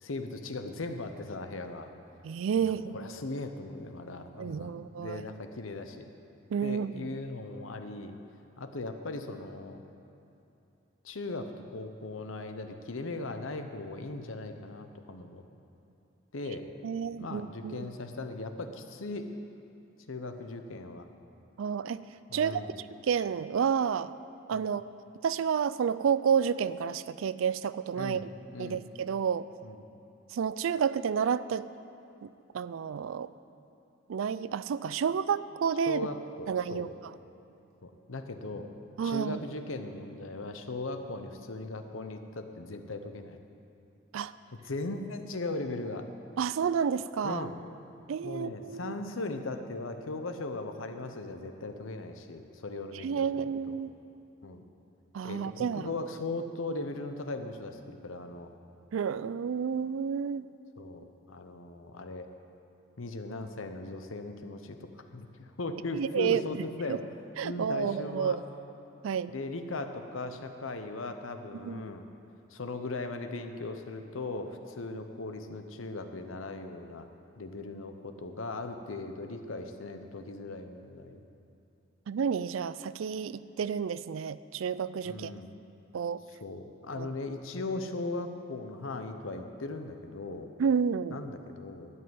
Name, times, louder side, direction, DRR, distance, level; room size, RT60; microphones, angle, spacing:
voice 1, 0.0-1.9 2.6-6.1 6.6-8.1 8.6-9.8 11.0-15.4 16.3-16.7 17.2-19.3 20.1-21.1 22.3-22.7 24.5-24.6 28.0-28.3 28.5-28.9 29.6-29.9 35.9-36.9 37.8-38.7 39.0-43.4 44.7-46.1 47.2-47.6 48.2-53.8 54.4-54.6 55.2-58.5 60.8-62.3 63.0-67.0 67.4-68.4 69.3-72.1 72.5-77.1 77.4-81.2 85.0-85.6 86.4-90.5 91.1-91.9, left 2 dB, 80° left, 7 dB, 0.8 m, -38 dB
voice 2, 2.2-3.0 4.4-5.3 6.5-7.1 16.8-17.9 21.6-22.0 22.3-22.6 23.0-24.1 24.5-24.8 25.2-28.2 28.6-29.5 30.3-31.7 32.2-32.3 32.5-33.3 34.1-36.1 36.5-36.9 39.0-39.4 44.1-44.3 46.4-47.5 48.1-48.9 53.0-53.9 55.1-55.9 58.9-60.4 65.9-66.4 66.9-67.0 67.4-68.4 69.0-69.3 71.5-71.8 82.1-85.3 85.9-86.2 87.0-87.1 90.6-91.2, right 7 dB, 85° right, 16 dB, 0.4 m, -30 dB
12.5 x 5.6 x 9.3 m, 2.8 s
head